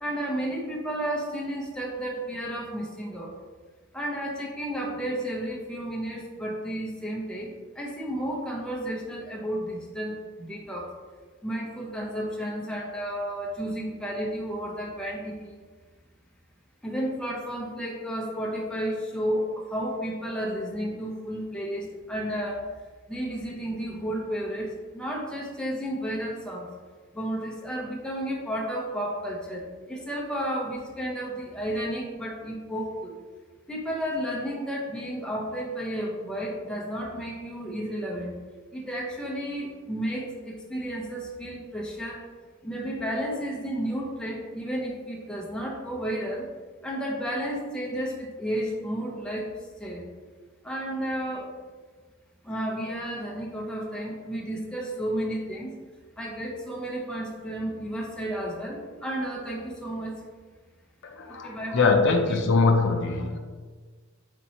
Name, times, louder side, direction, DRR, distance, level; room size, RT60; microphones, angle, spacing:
voice 1, 0.0-3.3 3.9-10.9 11.4-15.5 16.8-22.6 23.1-26.7 27.1-33.1 33.7-38.3 38.7-42.3 42.6-46.4 46.8-49.5 49.8-50.1 50.6-51.5 52.4-55.7 56.2-60.2 61.4-61.9 62.3-62.4, equal, 5° left, -3 dB, 0.7 m, -32 dB
voice 2, 61.0-63.4, left 4 dB, 55° left, 3 dB, 0.4 m, -23 dB
4.3 x 4.3 x 2.8 m, 1.5 s
head